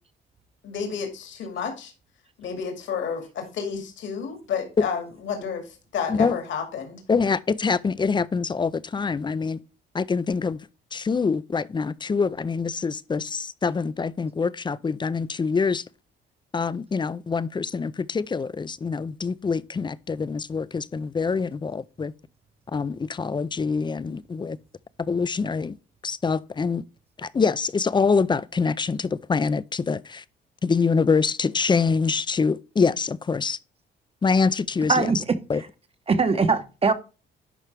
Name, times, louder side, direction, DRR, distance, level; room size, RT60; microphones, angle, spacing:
voice 1, 0.6-1.9 2.4-7.0, left 6 dB, 75° left, 2.2 m, -31 dB
voice 2, 7.1-9.6 9.9-10.6 10.9-15.8 16.5-22.1 22.7-24.6 25.1-25.8 26.0-26.8 27.2-30.2 30.6-33.6 34.2-35.1 35.5-35.6, left 5 dB, 25° left, 0.4 m, -25 dB
voice 3, 34.9-35.4 36.1-36.9, right 4 dB, 30° right, 1.0 m, -21 dB
11.0 x 4.4 x 3.4 m
cardioid pair, 90°, 20 cm